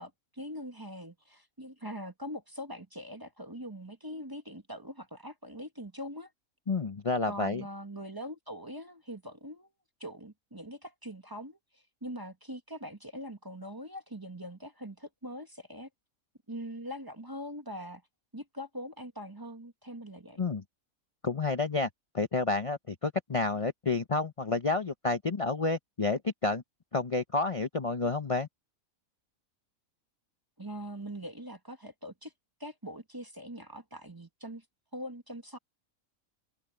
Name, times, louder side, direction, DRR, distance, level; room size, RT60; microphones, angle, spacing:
voice 1, 0.0-6.3 7.3-9.7 10.0-15.9 16.5-18.0 18.3-20.4 30.6-32.3 32.6-34.6 34.9-35.6, equal, 15° right, 1.2 m, -42 dB
voice 2, 6.7-7.6 20.4-20.6 21.2-21.9 22.1-26.6 26.9-28.5, left 3 dB, 30° left, 0.8 m, -30 dB
omnidirectional pair, 1.5 m